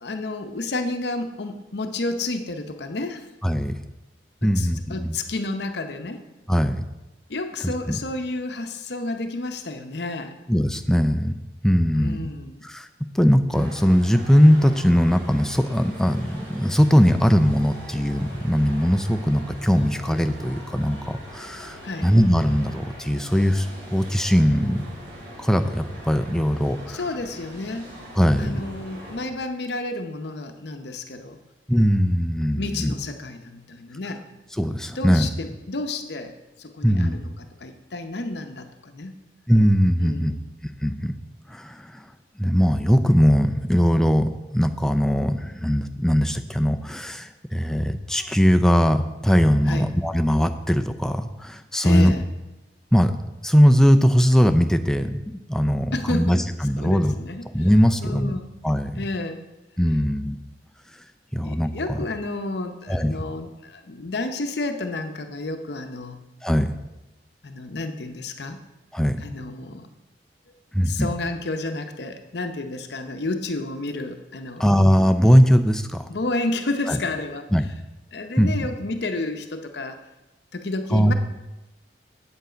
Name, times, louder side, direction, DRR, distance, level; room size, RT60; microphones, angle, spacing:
voice 1, 0.0-3.2 4.4-6.2 7.3-10.4 11.9-12.7 21.8-22.1 26.9-27.9 28.4-31.4 32.6-34.3 34.9-39.2 40.0-40.5 49.7-49.9 51.8-52.3 55.9-56.5 56.8-57.7 58.0-58.6 59.0-59.4 61.4-66.2 67.4-68.6 69.2-69.9 70.8-74.7 76.1-77.5 78.1-80.0 80.5-81.1, left 2 dB, 65° left, 7 dB, 0.7 m, -31 dB
voice 2, 3.4-3.7 4.4-5.2 6.5-6.9 7.6-8.0 10.5-11.3 11.6-12.3 12.6-12.9 13.1-24.8 25.4-27.0 28.2-28.5 31.7-32.9 34.6-35.3 36.8-37.2 39.5-40.4 40.8-41.1 41.5-42.1 42.4-52.1 52.9-53.1 53.4-57.2 57.5-58.3 58.6-58.9 59.8-60.4 61.3-62.1 62.9-63.1 66.4-66.7 68.9-69.2 70.7-71.1 74.6-76.1 76.9-77.0 77.5-77.7 78.4-78.5 80.9-81.1, equal, 5° left, 7 dB, 0.4 m, -20 dB
sound 1, 13.5-29.3, equal, 85° right, 3.4 m, -42 dB
8.1 x 7.9 x 5.0 m, 1.0 s
head